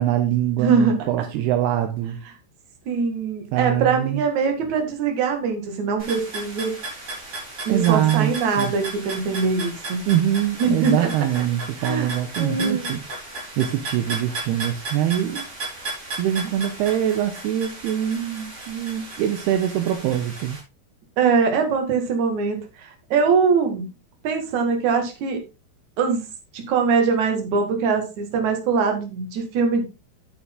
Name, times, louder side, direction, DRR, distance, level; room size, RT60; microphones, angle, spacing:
voice 1, 0.0-2.2 3.5-4.2 7.7-8.7 10.1-13.0 13.6-15.4 16.2-20.6, right 11 dB, 80° right, 2.7 m, -23 dB
voice 2, 0.6-1.0 2.9-6.7 7.7-10.0 10.6-11.1 11.8-12.1 12.4-12.9 21.2-23.9 24.2-25.4 26.0-26.2 26.5-29.8, right 5 dB, 50° right, 3.0 m, -22 dB
sound 1, 6.0-20.6, right 2 dB, 35° right, 5.3 m, -35 dB
9.5 x 8.7 x 3.8 m
omnidirectional pair, 4.9 m